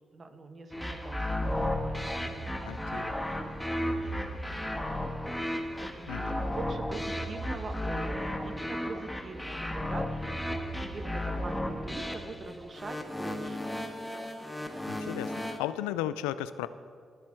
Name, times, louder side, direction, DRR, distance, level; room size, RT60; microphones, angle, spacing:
voice 1, 0.1-3.1 3.7-5.0 5.8-10.3 10.8-13.7, right 3 dB, 45° right, 8 dB, 1.4 m, -44 dB
sound 1, 0.7-15.6, left 1 dB, 5° left, 1.5 m, -34 dB
voice 2, 2.6-3.1 6.1-6.4 14.9-16.7, left 13 dB, 80° left, 14 dB, 0.4 m, -35 dB
19.5 x 7.3 x 4.6 m, 2.2 s
hypercardioid pair, 40°, 0 cm